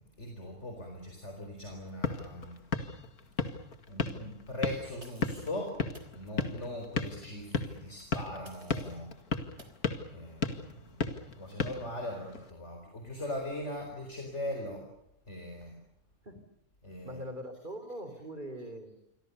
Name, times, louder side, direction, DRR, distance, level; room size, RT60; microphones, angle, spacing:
voice 1, 0.2-2.6 3.9-5.8 6.1-9.1 10.1-14.8 15.3-15.7 16.8-17.2, left 1 dB, 50° left, 3 dB, 4.6 m, -40 dB
sound 1, 1.7-12.5, left 4 dB, 75° left, 2.5 m, -36 dB
sound 2, 5.0-5.6 5.9-6.1 8.4-9.1 9.6-9.8, right 2 dB, 50° right, 3.9 m, -55 dB
voice 2, 17.0-18.9, equal, 30° right, 10 dB, 3.8 m, -42 dB
28.0 x 23.5 x 6.8 m, 0.81 s
omnidirectional pair, 1.6 m